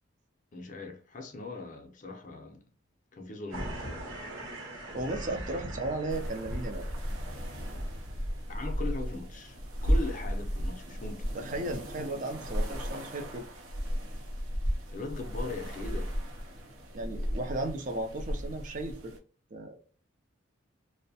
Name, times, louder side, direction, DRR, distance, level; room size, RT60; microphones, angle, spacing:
voice 1, 0.5-2.7 3.1-4.1 8.5-11.3 14.9-16.2, left 3 dB, 40° left, 0.5 m, -40 dB
sound 1, 3.5-8.9, right 1 dB, 70° right, 0.9 m, -41 dB
voice 2, 4.9-6.9 11.3-13.5 15.9-16.0 16.9-19.2 19.5-19.8, right 2 dB, 40° right, 0.4 m, -35 dB
sound 2, 6.1-19.2, equal, 90° right, 0.6 m, -34 dB
2.6 x 2.1 x 2.7 m
head